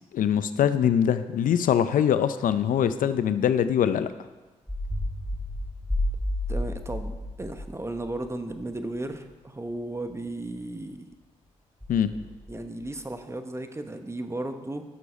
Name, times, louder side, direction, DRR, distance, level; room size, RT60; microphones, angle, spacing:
voice 1, 0.1-4.1 11.9-12.1, left 9 dB, 70° left, 13 dB, 0.5 m, -23 dB
sound 1, 3.0-3.1 4.7-8.7 9.1-9.3 10.1-10.3 11.8-12.9, left 1 dB, ahead, 3.5 m, -32 dB
voice 2, 6.5-11.0 12.2-14.8, right 2 dB, 20° right, 7 dB, 1.2 m, -35 dB
11.0 x 6.8 x 5.2 m, 1.3 s
supercardioid pair, 50°, 15 cm